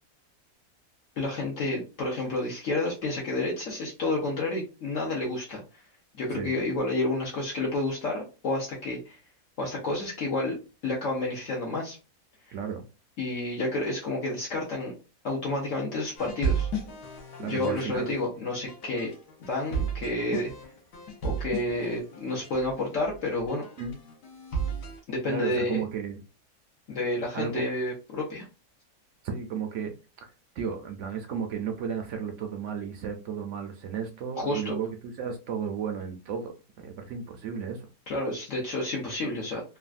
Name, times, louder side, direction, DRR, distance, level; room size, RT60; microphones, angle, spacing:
voice 1, 1.2-5.8 6.1-9.2 9.6-10.6 10.8-12.0 12.5-12.6 13.2-14.9 15.2-16.7 17.4-19.1 19.4-20.5 21.2-23.6 25.1-25.8 26.9-28.4 34.4-34.7 38.1-39.6, left 2 dB, 60° left, 1.0 m, -30 dB
voice 2, 12.5-12.9 17.4-18.2 23.8-24.0 25.3-26.2 27.3-27.6 29.2-29.9 30.6-37.9, right 7 dB, 70° right, 0.7 m, -33 dB
sound 1, 16.2-25.0, right 4 dB, 80° left, 1.3 m, -34 dB
3.3 x 2.2 x 2.4 m
omnidirectional pair, 1.6 m